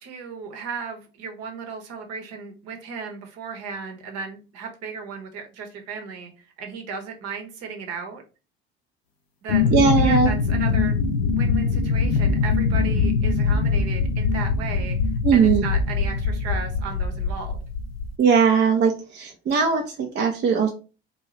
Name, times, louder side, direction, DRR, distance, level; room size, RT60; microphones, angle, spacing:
voice 1, 0.0-6.3 6.6-8.2 9.4-11.0 11.3-15.0 15.3-17.6, right 5 dB, 55° right, 4 dB, 1.0 m, -35 dB
sound 1, 9.5-18.1, left 4 dB, 90° left, 0.5 m, -22 dB
voice 2, 9.7-10.3 15.2-15.6 18.2-20.7, right 6 dB, 35° right, 3 dB, 0.6 m, -19 dB
2.6 x 2.3 x 3.1 m, 0.33 s
hypercardioid pair, 60°, 29 cm